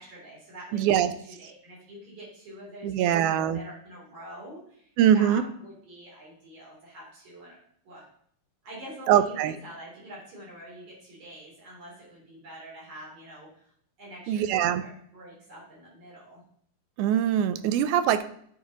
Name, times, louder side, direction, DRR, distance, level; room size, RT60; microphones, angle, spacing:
voice 1, 0.0-7.6 7.8-8.0 8.6-13.7 14.0-16.4, right 1 dB, 60° right, -6 dB, 4.5 m, -46 dB
voice 2, 0.7-1.1 2.8-3.6 5.0-5.4 9.1-9.5 14.3-14.9 17.0-18.2, right 10 dB, 80° right, 12 dB, 1.9 m, -22 dB
10.0 x 4.7 x 2.9 m, 0.65 s
omnidirectional pair, 3.7 m